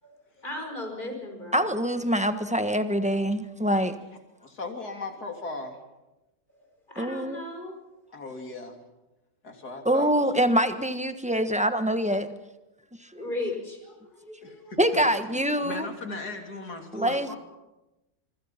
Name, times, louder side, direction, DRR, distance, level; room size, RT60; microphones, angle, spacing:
voice 1, 0.4-1.7 6.9-7.7 13.1-14.6, left 2 dB, 30° left, 2 dB, 5.3 m, -36 dB
voice 2, 1.5-3.9 7.0-7.4 9.8-12.3 14.8-15.9 16.9-17.4, equal, 5° right, 9 dB, 1.1 m, -25 dB
voice 3, 4.4-5.8 8.1-8.7 9.4-10.5 14.4-15.0 15.6-17.4, left 3 dB, 70° left, 4 dB, 3.6 m, -37 dB
26.0 x 24.5 x 5.8 m, 1.0 s
omnidirectional pair, 1.7 m